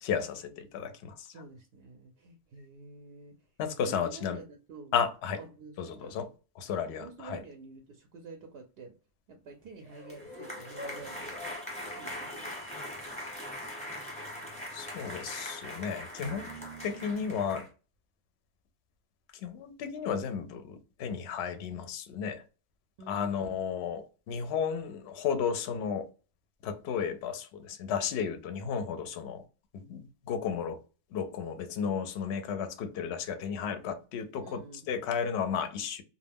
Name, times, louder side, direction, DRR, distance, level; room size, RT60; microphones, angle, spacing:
voice 1, 0.0-1.3 3.6-4.4 4.9-5.4 5.8-6.3 6.6-7.4 14.7-16.5 16.8-17.7 19.4-22.4 23.1-26.1 26.6-29.4 29.7-30.8 31.1-34.6 34.9-36.0, left 7 dB, 65° left, 0.7 m, -33 dB
voice 2, 1.3-3.3 3.8-4.9 5.4-6.2 7.0-9.0 9.3-11.4 11.8-12.5 23.0-23.6 34.4-34.9, right 3 dB, 65° right, 0.7 m, -49 dB
sound 1, 9.8-17.7, left 1 dB, 5° left, 0.9 m, -41 dB
2.4 x 2.1 x 3.3 m
omnidirectional pair, 1.3 m